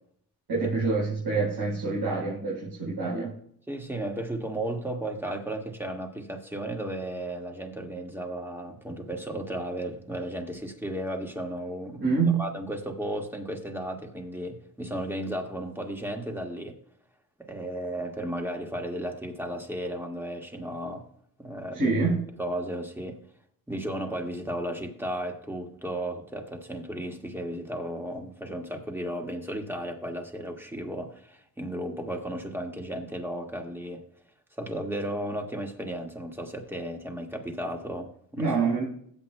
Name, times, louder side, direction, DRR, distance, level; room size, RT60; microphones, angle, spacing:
voice 1, 0.5-3.3 12.0-12.5 21.7-22.3 38.4-38.8, right 4 dB, 70° right, -7 dB, 4.5 m, -26 dB
voice 2, 3.7-12.1 12.4-16.8 17.4-21.1 21.4-22.0 22.4-23.2 23.7-34.0 34.6-38.5, right 1 dB, 5° right, 2 dB, 1.8 m, -34 dB
20.0 x 8.2 x 2.2 m, 0.66 s
cardioid pair, 105°, 38 cm